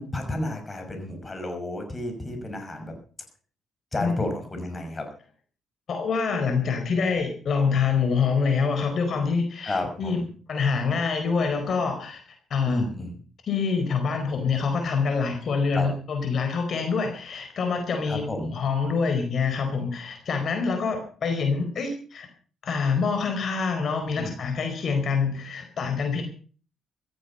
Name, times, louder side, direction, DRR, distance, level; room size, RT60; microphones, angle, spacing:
voice 1, 0.0-2.9 3.9-5.1 9.6-10.2 12.7-13.2 15.7-15.9 18.1-18.5 24.2-24.3, left 2 dB, 25° left, 5 dB, 5.9 m, -31 dB
voice 2, 5.9-10.2 10.5-12.2 12.5-12.8 13.5-18.2 18.5-22.3 22.6-26.2, left 5 dB, 55° left, 5 dB, 4.3 m, -26 dB
16.0 x 14.0 x 5.5 m, 0.41 s
cardioid pair, 90°, 0 cm